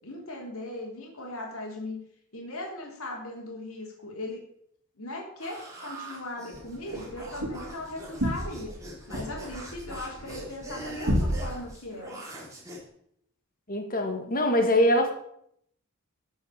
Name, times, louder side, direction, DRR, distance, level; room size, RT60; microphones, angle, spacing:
voice 1, 0.0-2.0 2.3-4.4 5.0-8.7 9.1-12.2, left 1 dB, 65° left, -1 dB, 3.3 m, -38 dB
sound 1, 5.4-12.8, right 1 dB, 15° right, 3.3 m, -43 dB
sound 2, 6.5-11.7, equal, 60° right, 3.1 m, -32 dB
voice 2, 13.7-15.1, left 1 dB, 40° left, 5 dB, 2.1 m, -23 dB
13.5 x 6.3 x 7.0 m, 0.71 s
head